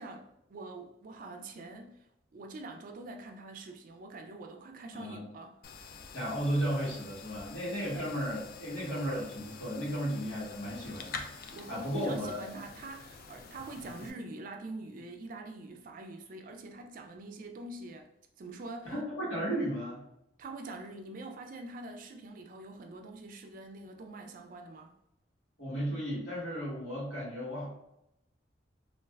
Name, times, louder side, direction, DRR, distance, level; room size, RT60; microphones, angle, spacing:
voice 1, 0.0-2.1 2.3-5.6 8.0-8.1 11.5-18.1 18.4-18.9 20.4-24.9, right 2 dB, 45° right, 4 dB, 0.3 m, -45 dB
voice 2, 4.9-5.3 6.1-12.4 14.0-14.1 18.8-20.0 25.6-27.7, equal, 85° left, -8 dB, 1.3 m, -34 dB
sound 1, 5.6-14.1, left 5 dB, 55° left, 0.3 m, -47 dB
3.2 x 2.4 x 2.3 m, 0.82 s
head